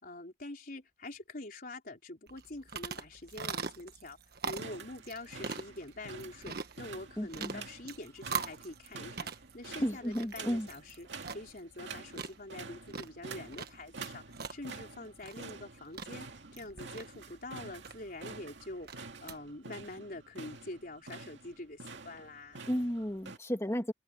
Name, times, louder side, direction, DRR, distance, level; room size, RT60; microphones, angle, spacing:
voice 1, 0.0-4.2 4.4-9.3 9.5-16.3 16.5-22.7, left 2 dB, 50° left, 4.1 m, -45 dB
sound 1, 2.3-19.4, right 5 dB, 55° right, 1.4 m, -43 dB
sound 2, 4.5-23.4, right 4 dB, 75° right, 2.3 m, -48 dB
voice 2, 7.2-7.6 9.8-10.7 22.7-23.9, equal, 15° left, 2.6 m, -33 dB
head